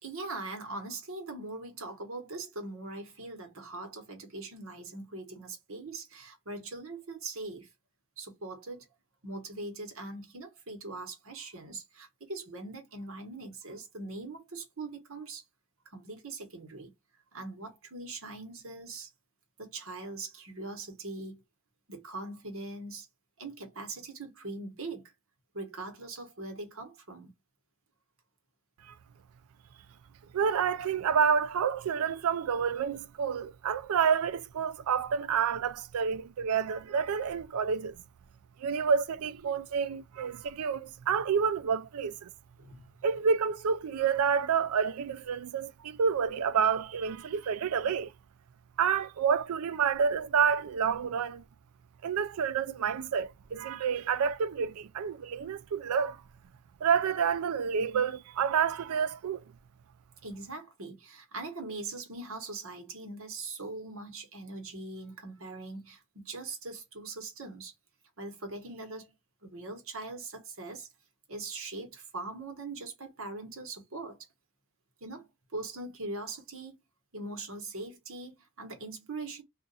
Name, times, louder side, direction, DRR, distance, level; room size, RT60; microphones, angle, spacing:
voice 1, 0.0-7.7 8.2-8.8 9.2-15.4 15.9-16.9 17.3-19.1 19.6-21.4 21.9-23.1 23.4-25.1 25.5-27.3 42.6-42.8 60.2-67.7 68.2-69.1 69.4-70.9 71.3-74.3 75.0-76.7 77.1-79.4, right 3 dB, 70° right, 1.2 m, -41 dB
voice 2, 30.3-38.0 38.6-42.3 43.0-48.1 48.8-51.4 52.0-56.2 56.8-59.4, right 6 dB, 90° right, 0.4 m, -29 dB
2.5 x 2.4 x 3.9 m
head